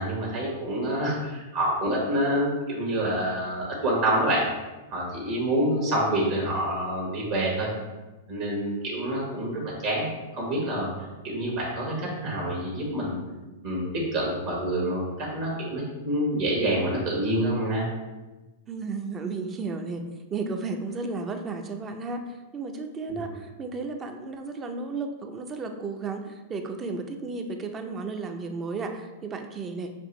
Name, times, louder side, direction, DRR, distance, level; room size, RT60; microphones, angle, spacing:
voice 1, 0.0-4.5 4.9-7.7 8.3-10.9 11.2-13.2 13.6-17.8 23.1-23.3, right 1 dB, 55° right, -4 dB, 1.4 m, -27 dB
voice 2, 18.7-20.0 20.3-29.9, right 4 dB, 25° right, 6 dB, 0.5 m, -33 dB
6.0 x 2.5 x 3.1 m, 1.1 s
hypercardioid pair, 120°, 0 cm